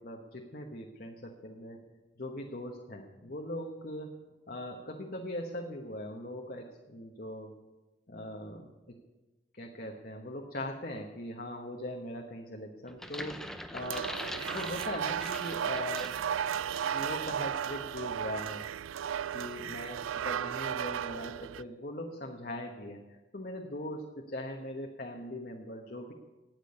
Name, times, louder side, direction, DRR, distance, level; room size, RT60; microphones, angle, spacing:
voice 1, 0.0-1.8 2.2-4.1 4.5-7.5 8.1-9.0 9.5-14.1 14.5-16.6 16.9-18.7 19.3-26.1, left 1 dB, 50° left, 2 dB, 1.2 m, -40 dB
sound 1, 12.9-16.3 16.7-17.0, left 1 dB, ahead, 0.7 m, -42 dB
sound 2, 13.8-21.6, right 9 dB, 90° right, 0.4 m, -35 dB
17.0 x 6.2 x 9.7 m, 1.1 s
head